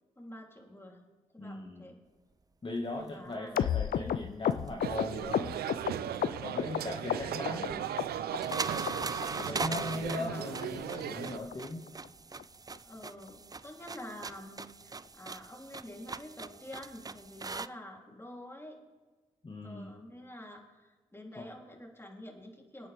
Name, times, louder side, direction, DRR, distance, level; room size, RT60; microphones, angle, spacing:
voice 1, 0.2-1.0 1.3-2.0 2.9-4.3 9.3-10.6 12.8-18.8 19.6-22.9, left 1 dB, 15° left, 0 dB, 3.5 m, -48 dB
voice 2, 1.4-1.8 2.6-5.7 6.4-7.9 9.5-11.9 19.4-20.0 21.4-21.5, left 1 dB, 30° left, -1 dB, 1.9 m, -39 dB
sound 1, 3.6-6.8 7.1-7.7 8.0-8.6 8.9-9.0 9.2-9.4 9.7-9.8 10.1-10.3 10.6-10.7 11.0-11.2 11.5-11.6 11.9-12.1 12.4-12.5 12.8-12.9 13.3-13.4, left 10 dB, 65° left, 0.5 m, -32 dB
sound 2, 4.4-5.8 7.0-17.7, right 4 dB, 25° right, 0.5 m, -41 dB
sound 3, 4.8-11.4, right 10 dB, 75° right, 0.6 m, -37 dB
23.0 x 9.1 x 3.6 m, 1.3 s
supercardioid pair, 45°, 16 cm